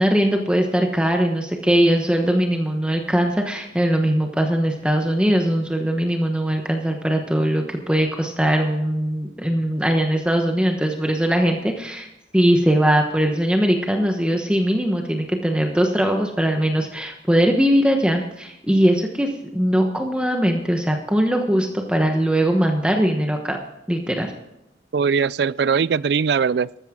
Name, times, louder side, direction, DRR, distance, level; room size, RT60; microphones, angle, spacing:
voice 1, 0.0-12.1 12.3-23.6 23.9-24.3, equal, 5° right, 1.1 m, -20 dB
voice 2, 24.9-26.8, right 6 dB, 65° right, 0.4 m, -20 dB
14.0 x 13.5 x 3.7 m
head